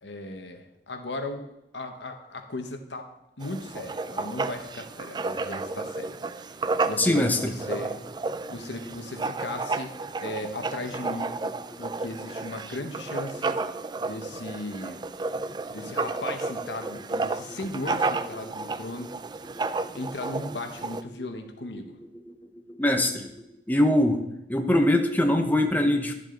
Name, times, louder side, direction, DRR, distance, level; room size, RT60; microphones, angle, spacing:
voice 1, 0.0-1.5 1.7-3.1 3.4-6.5 6.8-8.0 8.5-11.4 11.8-13.6 14.0-15.0 15.7-19.1 19.9-22.0, left 2 dB, 80° left, 6 dB, 1.2 m, -36 dB
Writing, 3.4-21.0, right 3 dB, 25° right, 0.3 m, -32 dB
voice 2, 7.0-7.5 15.5-15.6 22.7-23.3 23.7-24.2 24.5-26.1, left 1 dB, 10° left, 4 dB, 0.8 m, -22 dB
12.0 x 7.4 x 3.9 m, 0.87 s
head